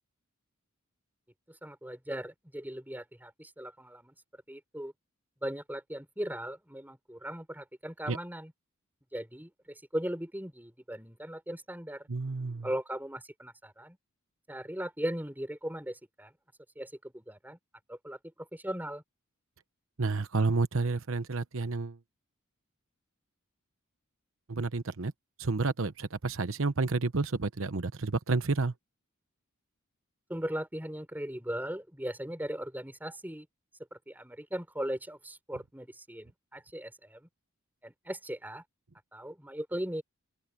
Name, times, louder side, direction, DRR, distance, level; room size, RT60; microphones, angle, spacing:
voice 1, 1.5-4.1 4.5-4.9 5.4-8.5 9.1-12.1 12.6-14.0 14.5-16.3 16.8-17.6 17.9-19.0 30.3-33.5 33.9-37.3 37.8-38.6 39.1-40.0, equal, 10° right, 5.6 m, -38 dB
voice 2, 12.1-12.7 20.0-22.0 24.5-25.1 25.4-28.7, right 3 dB, 65° right, 1.0 m, -30 dB
open air
head